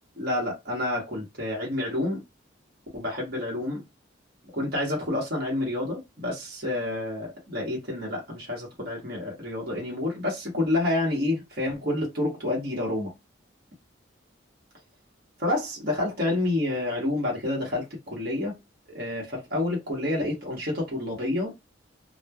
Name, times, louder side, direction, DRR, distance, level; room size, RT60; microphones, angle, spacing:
voice 1, 0.2-2.2 2.9-3.8 4.5-13.1 15.4-18.6 18.9-21.6, left 2 dB, 50° right, 1.0 m, -29 dB
3.0 x 2.1 x 2.2 m
head